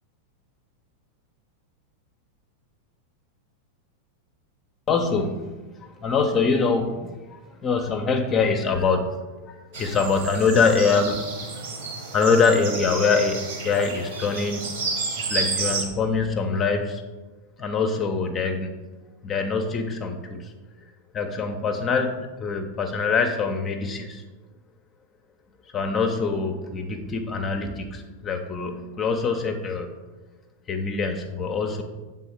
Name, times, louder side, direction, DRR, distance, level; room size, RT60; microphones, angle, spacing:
voice 1, 4.9-5.5 5.8-11.2 12.1-14.7 15.2-17.0 17.6-18.8 19.2-20.5 21.1-24.2 25.7-29.9 30.7-31.8, left 4 dB, 25° left, 5 dB, 0.5 m, -24 dB
sound 1, 9.7-15.8, right 4 dB, 55° right, 1.2 m, -31 dB
7.0 x 3.7 x 4.3 m, 1.2 s
figure-of-eight pair, 90°, 0 cm